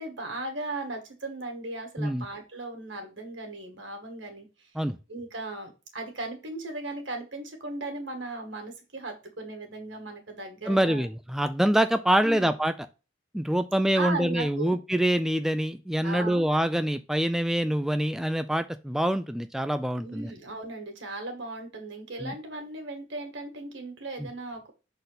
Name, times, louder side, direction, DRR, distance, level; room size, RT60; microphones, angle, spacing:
voice 1, 0.0-4.5 5.1-11.1 12.2-12.5 13.9-14.8 16.0-16.5 20.0-24.7, right 2 dB, 70° right, 4 dB, 2.0 m, -37 dB
voice 2, 10.7-12.7 13.3-20.3 22.2-22.3 24.2-24.3, right 1 dB, ahead, 9 dB, 0.3 m, -25 dB
6.6 x 4.2 x 4.0 m, 0.31 s
head